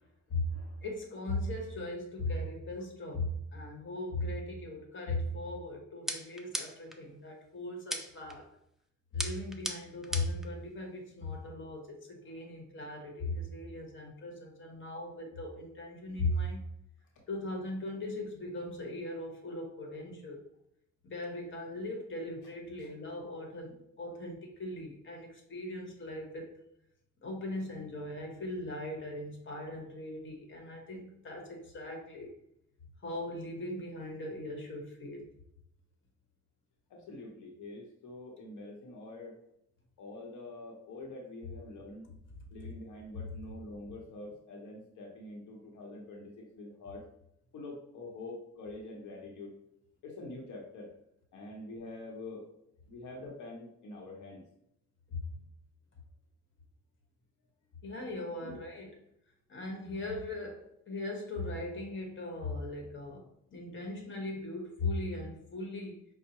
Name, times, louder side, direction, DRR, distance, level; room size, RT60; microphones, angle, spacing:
voice 1, 0.3-8.5 9.1-16.6 17.3-20.4 21.0-26.5 27.2-32.3 33.0-35.3 55.1-55.2 57.8-58.9 59.5-66.0, left 2 dB, 40° left, 1 dB, 1.1 m, -38 dB
sound 1, 6.1-7.0 7.9-8.4 9.2-10.5, equal, ahead, 0.4 m, -37 dB
voice 2, 36.9-39.4 40.0-42.1 42.5-47.0 47.5-49.5 50.0-50.9 51.3-52.5 52.9-54.4 55.3-55.5 58.4-58.6, left 2 dB, 75° left, -1 dB, 0.9 m, -45 dB
5.3 x 2.1 x 2.9 m, 0.77 s
cardioid pair, 90°, 30 cm